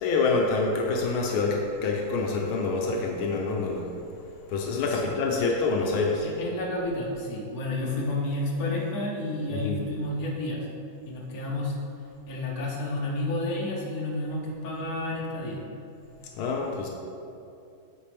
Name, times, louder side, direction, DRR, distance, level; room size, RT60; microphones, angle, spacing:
voice 1, 0.0-3.9 4.5-6.3 9.5-9.8 16.4-16.9, left 3 dB, 80° left, 0 dB, 1.5 m, -26 dB
voice 2, 4.9-5.2 6.2-10.6 11.1-11.7 12.3-15.6, left 1 dB, 50° left, -3 dB, 1.5 m, -31 dB
8.5 x 5.1 x 3.3 m, 2.6 s
omnidirectional pair, 2.3 m